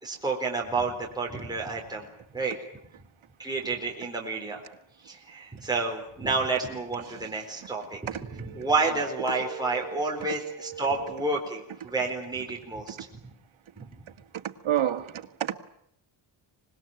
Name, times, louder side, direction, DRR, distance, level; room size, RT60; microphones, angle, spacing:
voice 1, 0.0-2.1 2.3-2.6 3.4-4.6 5.0-8.0 8.3-12.9, right 3 dB, 10° right, 4.2 m, -30 dB
voice 2, 7.1-7.4 8.1-8.7 9.2-11.4 11.8-11.9 13.8-13.9 14.3-15.5, right 11 dB, 75° right, 2.0 m, -33 dB
25.5 x 20.5 x 9.1 m
wide cardioid pair, 170°, 48 cm